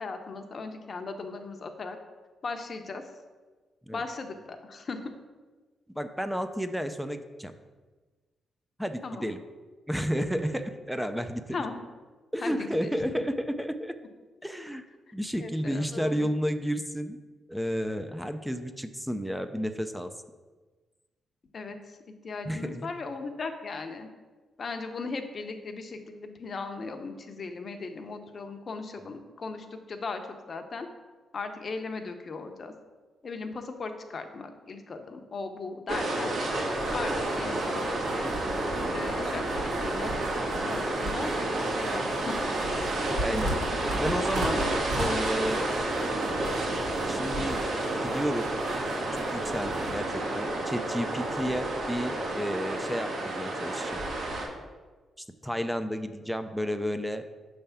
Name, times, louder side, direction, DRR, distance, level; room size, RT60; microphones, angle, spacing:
voice 1, 0.0-2.0 2.4-3.1 3.9-5.1 9.0-9.2 11.5-11.8 12.4-12.9 15.1-15.2 15.4-16.3 21.5-22.0 22.2-24.1 24.6-30.2 30.5-30.9 31.3-32.7 33.2-36.3 36.9-38.3 38.9-40.2 40.5-41.3 41.7-42.4 43.5-44.1, left 4 dB, 50° left, 6 dB, 0.8 m, -37 dB
voice 2, 6.0-7.5 8.8-9.4 9.9-11.6 12.3-13.9 14.4-14.8 15.1-17.2 17.5-20.1 22.4-22.9 43.2-43.6 44.0-44.6 44.9-45.6 47.1-47.6 48.0-48.5 49.1-54.0 55.4-57.2, equal, ahead, 9 dB, 0.5 m, -31 dB
sound 1, 35.9-54.5, right 2 dB, 70° right, 1.6 m, -30 dB
sound 2, 36.7-49.9, right 1 dB, 90° right, 2.1 m, -38 dB
6.5 x 3.5 x 5.7 m, 1.3 s
cardioid pair, 85°, 0 cm